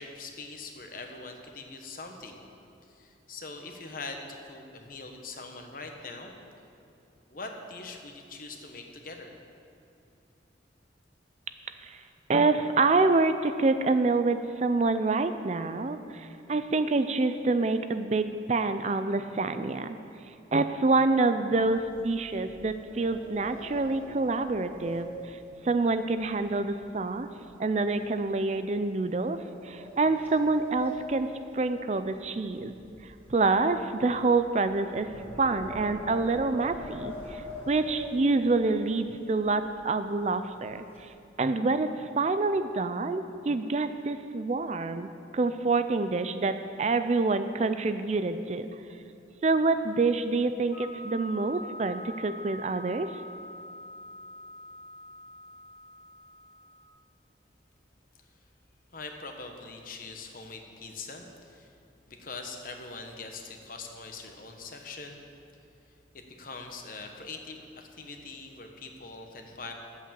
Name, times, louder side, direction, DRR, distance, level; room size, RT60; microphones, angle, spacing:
voice 1, 0.0-2.4 2.9-6.4 7.3-9.4 58.9-61.7 62.1-65.2 66.1-69.7, left 3 dB, 50° left, 3 dB, 1.2 m, -42 dB
voice 2, 12.3-20.0 20.5-25.4 25.6-27.3 27.6-32.7 33.0-35.1 35.4-41.1 41.4-45.1 45.3-48.7 49.4-53.1, right 3 dB, 35° right, 10 dB, 0.4 m, -27 dB
sound 1, 21.5-26.9 27.2-27.5 28.0-28.2 29.0-32.3 32.6-38.8 39.4-39.5 39.8-40.1 40.4-41.1, equal, 10° left, 1.8 m, -43 dB
sound 2, 50.7-56.8, left 1 dB, 25° left, 2.6 m, -44 dB
11.0 x 8.3 x 7.5 m, 2.7 s
head